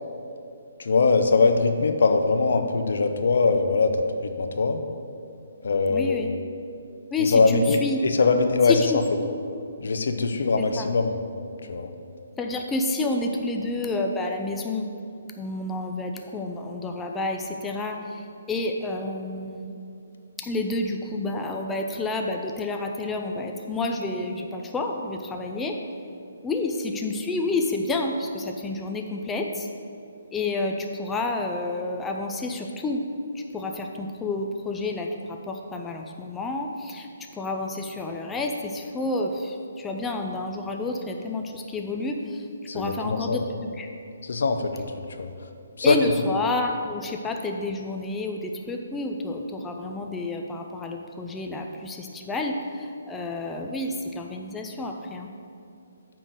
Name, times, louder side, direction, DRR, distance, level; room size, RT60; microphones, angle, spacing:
voice 1, 0.8-4.8 5.6-6.2 7.2-8.8 9.8-11.2 11.7-11.9 42.7-43.4 44.2-44.8 45.2-45.3 45.8-46.0, left 4 dB, 65° left, 7 dB, 0.6 m, -22 dB
voice 2, 5.9-6.3 7.1-8.0 8.7-9.3 10.6-10.9 12.4-14.9 15.4-19.7 20.4-25.8 26.4-29.7 30.3-33.0 33.3-37.1 37.3-42.5 42.7-43.9 45.8-55.3, left 2 dB, 10° left, 2 dB, 0.5 m, -29 dB
8.8 x 3.8 x 6.4 m, 2.6 s
figure-of-eight pair, 140°, 0 cm